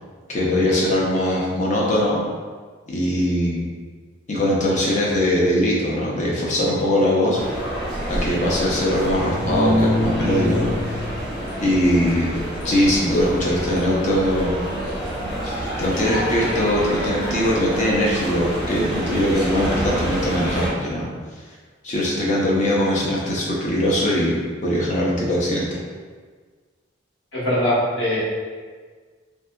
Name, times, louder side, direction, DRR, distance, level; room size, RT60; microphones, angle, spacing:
voice 1, 0.3-2.2 2.9-3.7 4.3-7.4 8.1-11.0 11.6-12.4 12.6-14.5 15.5-21.1 21.8-25.7, left 1 dB, 35° left, -5 dB, 0.6 m, -21 dB
sound 1, 7.4-20.7, right 1 dB, 5° right, 0.8 m, -28 dB
sound 2, 9.2-11.2 13.8-14.0, left 1 dB, 20° left, 1.0 m, -24 dB
voice 2, 27.3-28.2, left 1 dB, 70° left, -8 dB, 1.1 m, -21 dB
3.5 x 2.7 x 2.2 m, 1.5 s
head